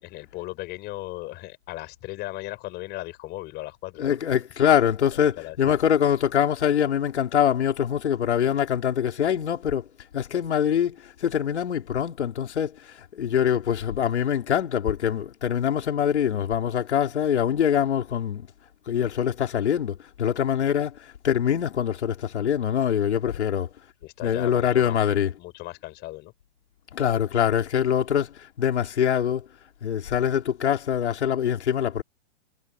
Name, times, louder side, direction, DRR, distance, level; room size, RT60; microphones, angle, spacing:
voice 1, 0.0-4.2 5.1-5.8 23.2-23.4 24.0-25.0 25.4-26.3, left 19 dB, 30° left, 5.3 m, -37 dB
voice 2, 4.0-9.9 10.1-18.5 18.9-23.7 24.2-25.3 26.9-29.4 29.8-32.0, left 9 dB, 85° left, 4.0 m, -24 dB
hypercardioid pair, 145°, 33 cm